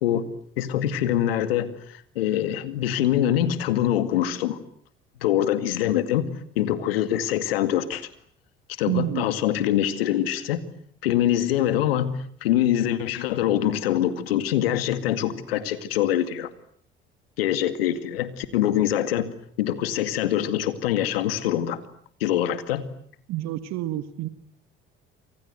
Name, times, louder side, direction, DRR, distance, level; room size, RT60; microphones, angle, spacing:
voice 1, 0.6-4.6 5.2-8.1 8.8-10.6 11.0-16.5 17.4-19.3 19.6-21.8 22.2-22.9, left 11 dB, 80° left, 13 dB, 2.2 m, -24 dB
voice 2, 8.9-9.3 23.3-24.3, right 14 dB, 65° right, 13 dB, 1.8 m, -28 dB
28.5 x 25.5 x 8.1 m, 0.63 s
hypercardioid pair, 55°, 29 cm